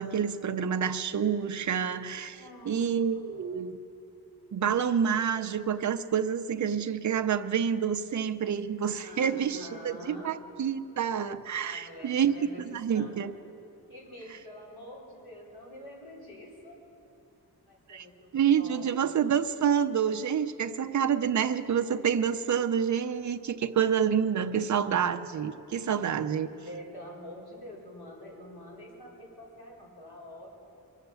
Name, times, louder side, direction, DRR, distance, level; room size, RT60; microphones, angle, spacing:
voice 1, 0.0-3.8 4.5-13.3 17.9-18.1 18.3-26.5, right 8 dB, 50° right, 7 dB, 0.6 m, -28 dB
voice 2, 2.3-3.2 9.0-10.3 11.6-13.2 13.9-16.7 17.7-19.1 25.9-30.5, left 1 dB, 75° left, -5 dB, 4.6 m, -46 dB
23.5 x 8.3 x 6.9 m, 2.7 s
wide cardioid pair, 175°, 38 cm